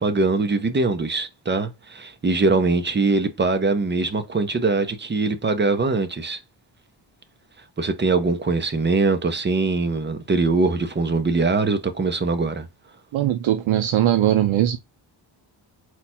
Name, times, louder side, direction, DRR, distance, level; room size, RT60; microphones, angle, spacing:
voice 1, 0.0-6.4 7.8-12.7, right 3 dB, 25° right, 0.5 m, -22 dB
voice 2, 13.1-14.8, right 12 dB, 80° right, 0.5 m, -20 dB
4.4 x 2.3 x 4.1 m
wide cardioid pair, 180°, 47 cm